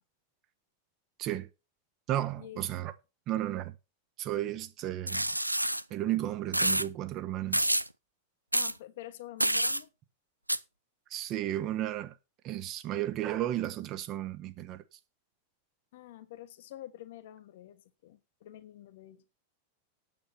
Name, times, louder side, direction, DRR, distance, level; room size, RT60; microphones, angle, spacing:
voice 1, 2.1-2.9 3.3-3.7 4.2-5.3 5.9-7.7 11.1-12.1 12.4-15.0, right 13 dB, 35° right, 1.5 m, -33 dB
sound 1, 5.1-5.8 6.5-6.9 7.5-7.9 8.5-8.7 9.4-9.8 10.5-10.6, right 1 dB, 85° right, 0.5 m, -27 dB
voice 2, 8.5-9.9 15.9-19.2, left 13 dB, 55° left, 1.3 m, -47 dB
9.1 x 8.3 x 5.7 m
figure-of-eight pair, 90°, 0 cm